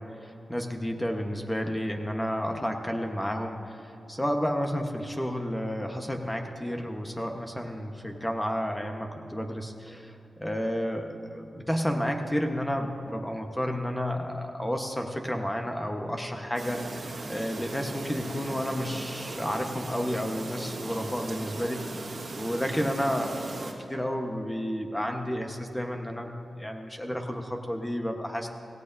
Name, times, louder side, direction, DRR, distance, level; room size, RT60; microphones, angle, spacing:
voice 1, 0.0-17.0 17.3-22.0 22.3-28.5, equal, 10° left, 3 dB, 1.2 m, -31 dB
Chirp tweet, 16.5-23.7, right 3 dB, 60° right, 1.6 m, -38 dB
17.5 x 16.5 x 2.7 m, 2.7 s
cardioid pair, 75°, 0 cm